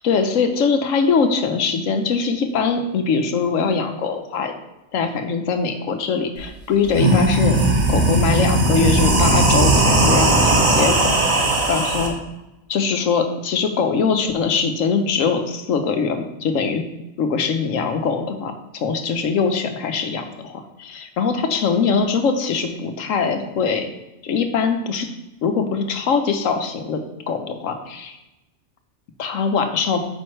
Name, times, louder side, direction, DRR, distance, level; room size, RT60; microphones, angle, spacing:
voice 1, 0.0-4.5 4.9-7.6 7.9-11.1 11.7-12.2 12.7-16.8 17.2-23.9 24.2-25.1 25.4-28.2 29.2-30.0, left 5 dB, 80° left, 7 dB, 1.2 m, -22 dB
sound 1, 6.4-6.5 6.8-12.1, right 2 dB, 85° right, 1.8 m, -17 dB
8.7 x 5.5 x 3.2 m, 0.99 s
omnidirectional pair, 1.3 m